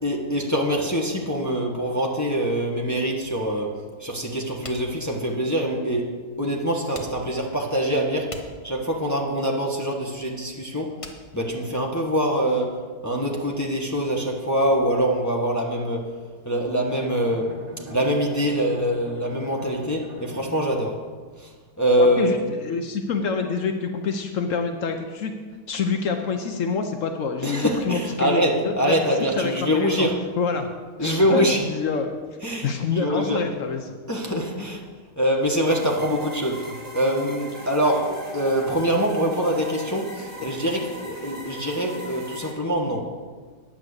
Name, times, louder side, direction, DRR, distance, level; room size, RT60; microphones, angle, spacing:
voice 1, 0.0-11.0 11.3-16.1 16.4-17.6 17.9-21.0 21.4-21.5 21.8-22.4 27.4-30.2 31.0-31.6 32.4-33.5 34.0-34.8 35.2-43.1, equal, 15° left, -1 dB, 0.6 m, -24 dB
sound 1, 4.6-12.3, left 1 dB, 60° left, 0.3 m, -43 dB
Bowed string instrument, 16.8-21.2, right 1 dB, 30° right, 0.8 m, -42 dB
voice 2, 22.0-22.4 22.6-25.3 25.7-29.0 29.4-30.1 30.4-30.7 31.0-32.1 32.6-33.8, left 5 dB, 85° left, 5 dB, 0.6 m, -26 dB
sound 2, 35.7-42.5, equal, 50° right, 2.8 m, -39 dB
10.0 x 6.1 x 7.9 m, 1.5 s
omnidirectional pair, 2.3 m